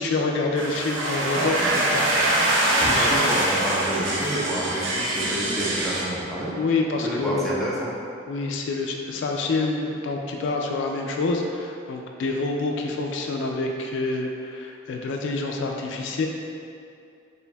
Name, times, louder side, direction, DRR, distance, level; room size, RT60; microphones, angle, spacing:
voice 1, 0.0-2.1 2.4-2.5 2.9-3.3 6.5-7.6 8.3-16.3, left 3 dB, 65° left, 2 dB, 0.3 m, -27 dB
sound 1, 0.6-6.0, right 1 dB, 70° right, 0.6 m, -23 dB
voice 2, 3.0-6.5 7.0-7.9, right 1 dB, ahead, -7 dB, 0.5 m, -29 dB
4.3 x 3.3 x 2.2 m, 2.5 s
head